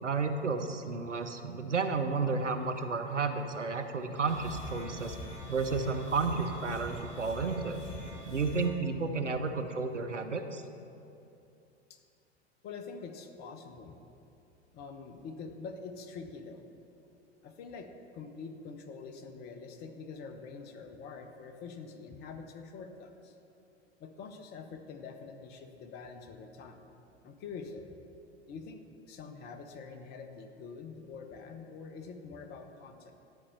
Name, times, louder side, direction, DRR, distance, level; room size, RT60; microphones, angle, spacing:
voice 1, 0.0-5.2 5.5-7.8 8.3-10.6, right 4 dB, 85° right, 7 dB, 0.6 m, -32 dB
sound 1, 4.3-8.7, left 1 dB, 70° left, 2.2 m, -43 dB
voice 2, 12.6-14.0 14.7-16.6 17.4-23.4 24.0-26.8 27.2-27.9 28.5-33.2, left 5 dB, 30° left, 6 dB, 0.7 m, -45 dB
11.0 x 4.2 x 6.6 m, 2.7 s
figure-of-eight pair, 90°, 35 cm